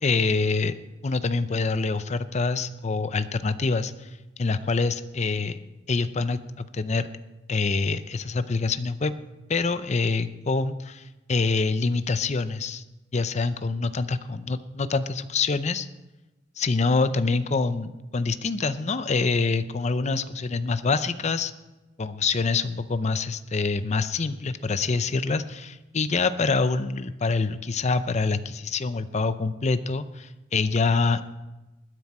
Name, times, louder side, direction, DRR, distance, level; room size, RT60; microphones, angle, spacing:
voice 1, 0.0-0.8 1.0-4.1 4.4-5.6 5.9-7.1 7.5-9.1 9.5-12.8 13.1-15.9 16.6-21.5 22.0-31.2, left 4 dB, 35° left, 13 dB, 0.6 m, -25 dB
20.5 x 9.6 x 4.3 m, 1.1 s
head